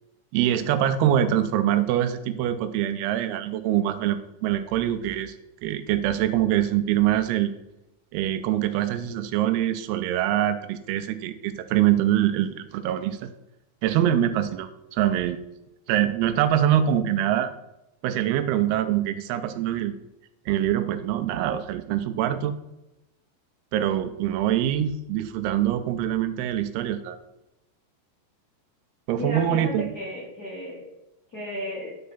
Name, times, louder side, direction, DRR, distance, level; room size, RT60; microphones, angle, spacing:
voice 1, 0.3-5.4 5.6-7.5 8.1-13.3 13.8-15.4 15.9-17.5 18.0-19.9 20.5-22.6 23.7-27.2 29.1-29.9, right 11 dB, 85° right, 10 dB, 2.6 m, -24 dB
voice 2, 29.1-30.8 31.3-31.9, left 1 dB, 45° left, -7 dB, 1.2 m, -33 dB
9.6 x 4.7 x 5.5 m, 0.92 s
omnidirectional pair, 4.6 m